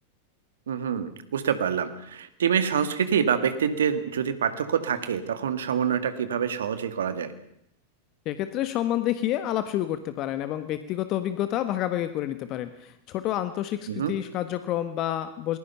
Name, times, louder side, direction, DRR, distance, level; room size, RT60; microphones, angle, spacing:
voice 1, 0.7-7.3 13.9-14.1, right 7 dB, 70° right, 11 dB, 2.1 m, -26 dB
voice 2, 8.2-15.6, left 12 dB, 40° left, 10 dB, 1.4 m, -29 dB
28.0 x 20.0 x 5.7 m, 0.75 s
figure-of-eight pair, 95°, 0 cm